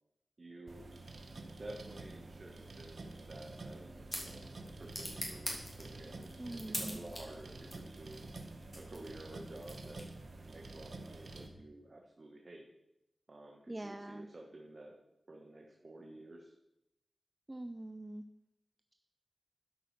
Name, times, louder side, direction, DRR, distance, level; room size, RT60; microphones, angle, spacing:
voice 1, 0.4-0.9 1.6-4.4 4.8-8.2 8.7-10.1 10.4-12.7 13.3-15.0 15.3-16.5, right 1 dB, 50° right, 0 dB, 1.4 m, -51 dB
sound 1, 0.7-11.5, right 2 dB, 70° right, 1.4 m, -49 dB
sound 2, 3.5-10.4, equal, 10° left, 3.1 m, -46 dB
voice 2, 6.4-7.0 13.7-14.3 17.5-18.2, right 1 dB, 25° right, 9 dB, 0.6 m, -43 dB
11.5 x 5.4 x 6.6 m, 0.88 s
wide cardioid pair, 60°, 0 cm